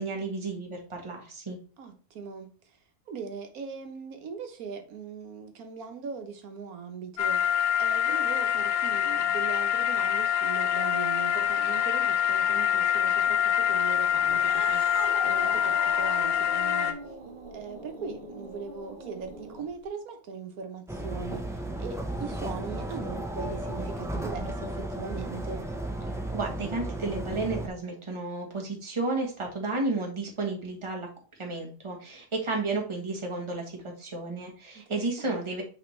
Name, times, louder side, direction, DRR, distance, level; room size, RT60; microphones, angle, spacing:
voice 1, 0.0-1.6 26.3-31.1 31.4-35.6, right 3 dB, 20° right, 1.3 m, -32 dB
voice 2, 1.8-2.8 3.1-17.0 17.5-25.7 34.7-35.6, right 5 dB, 80° right, 1.4 m, -40 dB
sound 1, 7.2-16.9, left 9 dB, 65° left, 1.0 m, -25 dB
Cat, 14.2-19.8, right 2 dB, 35° right, 1.6 m, -40 dB
sound 2, 20.9-27.7, right 1 dB, 5° right, 0.5 m, -34 dB
9.0 x 3.5 x 3.2 m
omnidirectional pair, 1.5 m